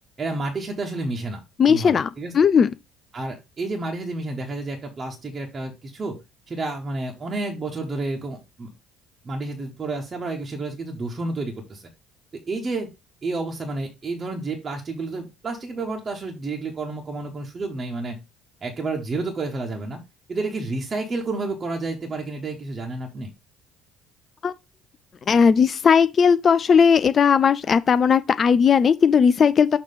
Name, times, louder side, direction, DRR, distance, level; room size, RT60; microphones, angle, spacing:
voice 1, 0.2-2.3 3.1-6.2 6.5-8.7 9.2-11.9 12.5-12.9 13.2-18.2 18.6-20.0 20.3-23.3, right 3 dB, 35° right, 1.2 m, -30 dB
voice 2, 1.6-2.1 2.3-2.7 24.4-24.5 25.3-29.8, left 6 dB, 40° left, 0.3 m, -17 dB
6.5 x 3.0 x 5.3 m
figure-of-eight pair, 55°, 0 cm